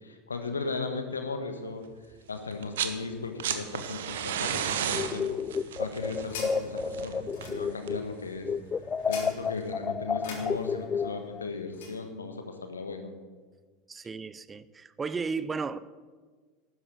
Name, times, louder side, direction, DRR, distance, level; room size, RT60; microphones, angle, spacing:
voice 1, 0.0-1.8 2.3-8.5 9.1-13.1, left 4 dB, 80° left, 1.5 m, -36 dB
sound 1, 2.5-3.0 3.2-8.1 9.4-9.5, right 8 dB, 65° right, 1.1 m, -33 dB
sound 2, 4.9-8.1 8.4-11.5, left 5 dB, 25° left, 0.4 m, -31 dB
sound 3, 5.4-12.0, left 4 dB, 60° left, 3.5 m, -46 dB
voice 2, 13.9-15.8, right 4 dB, 20° right, 0.6 m, -34 dB
12.0 x 9.7 x 6.9 m
figure-of-eight pair, 80°, 0 cm